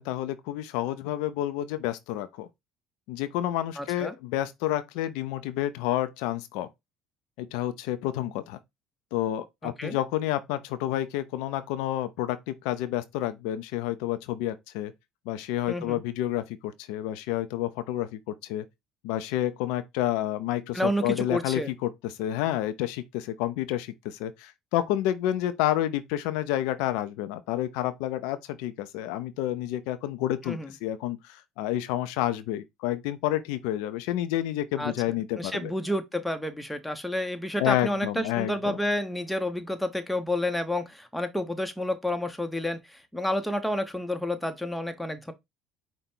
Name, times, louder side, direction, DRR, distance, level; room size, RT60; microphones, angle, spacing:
voice 1, 0.0-2.5 3.1-6.7 7.4-8.6 9.1-14.9 15.3-18.6 19.0-35.7 37.6-38.8, left 13 dB, 75° left, 0.4 m, -29 dB
voice 2, 3.8-4.1 9.6-10.0 15.7-16.0 20.7-21.7 30.4-30.7 34.8-45.3, left 1 dB, 5° left, 0.9 m, -30 dB
5.2 x 2.2 x 4.3 m
hypercardioid pair, 75°, 0 cm